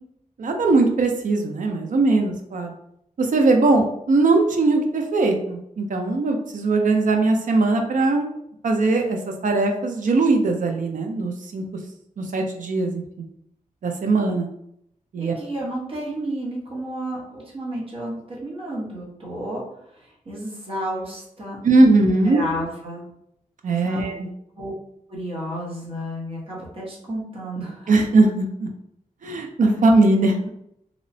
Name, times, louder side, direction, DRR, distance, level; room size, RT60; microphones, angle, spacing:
voice 1, 0.4-2.7 3.2-8.3 8.6-11.6 12.2-13.0 13.8-14.5 15.1-15.3 21.6-22.4 23.6-24.3 27.9-28.7 29.2-30.5, right 3 dB, 65° right, 3 dB, 0.4 m, -20 dB
voice 2, 15.2-21.6 22.3-23.0 23.8-24.2 24.6-24.7 25.1-27.9, right 1 dB, 40° right, -5 dB, 1.0 m, -32 dB
2.9 x 2.0 x 2.6 m, 0.74 s
wide cardioid pair, 145°, 14 cm